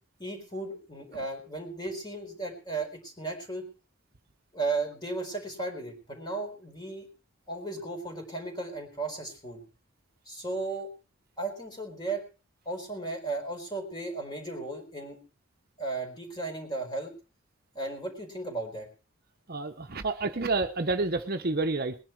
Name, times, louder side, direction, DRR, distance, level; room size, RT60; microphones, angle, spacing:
voice 1, 0.2-3.6 4.5-7.1 7.5-9.6 10.3-10.9 11.4-12.2 12.7-15.2 15.8-17.1 17.7-18.9, right 3 dB, 20° left, 3 dB, 4.3 m, -35 dB
voice 2, 19.5-22.0, right 3 dB, 45° right, 7 dB, 0.9 m, -29 dB
20.5 x 10.5 x 4.6 m, 0.34 s
head